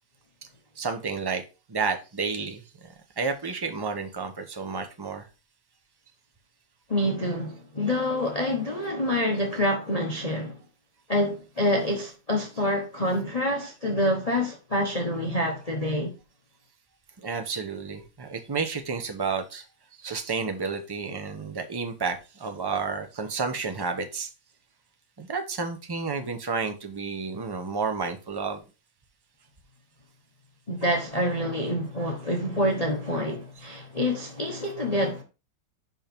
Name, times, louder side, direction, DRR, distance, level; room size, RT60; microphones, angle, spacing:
voice 1, 0.8-1.4 1.7-5.2 17.2-19.6 20.0-24.3 25.2-28.6, right 5 dB, 25° right, 0.6 m, -31 dB
voice 2, 6.9-10.6 11.1-16.1 30.7-35.2, left 1 dB, 25° left, 1.0 m, -27 dB
5.6 x 5.4 x 4.4 m
omnidirectional pair, 1.9 m